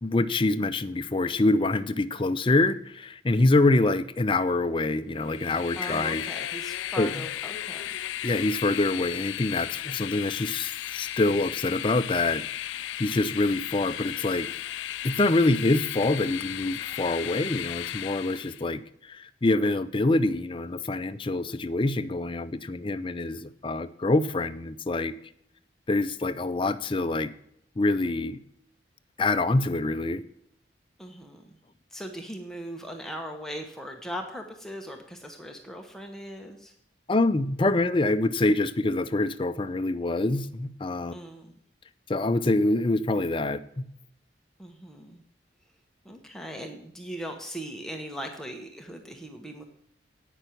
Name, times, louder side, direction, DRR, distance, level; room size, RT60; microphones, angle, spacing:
voice 1, 0.0-6.2 7.0-7.3 8.2-14.5 15.0-25.1 25.9-27.3 27.8-28.4 29.2-30.2 37.1-41.1 42.1-43.9, left 2 dB, 30° left, 11 dB, 0.5 m, -25 dB
Train, 5.2-18.7, left 12 dB, 85° left, 0.3 m, -35 dB
voice 2, 5.7-7.9 31.0-31.4 31.9-36.7 41.1-41.5 44.6-45.2 46.0-49.6, equal, 5° left, 2 dB, 0.9 m, -39 dB
9.0 x 6.1 x 8.3 m, 0.71 s
head